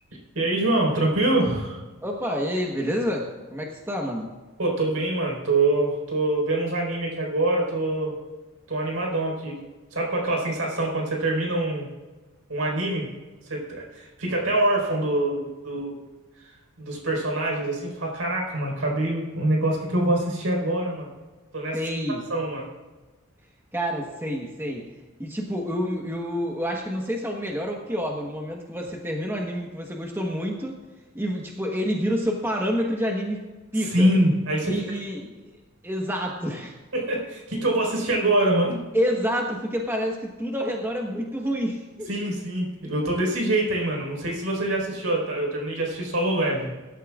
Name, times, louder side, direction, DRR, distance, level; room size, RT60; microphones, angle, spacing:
voice 1, 0.3-1.8 4.6-8.2 8.7-9.6 9.9-11.9 12.5-13.1 13.5-16.0 16.8-21.1 21.5-21.8 22.3-22.7 33.8-35.0 36.9-38.8 42.1-46.7, right 1 dB, 65° right, -1 dB, 4.5 m, -25 dB
voice 2, 2.0-4.3 21.7-22.2 23.7-30.8 31.1-33.4 33.7-34.1 34.6-35.5 35.8-36.8 38.9-42.3 42.8-42.9, equal, 10° right, 0 dB, 1.2 m, -28 dB
23.0 x 12.5 x 2.4 m, 1.3 s
head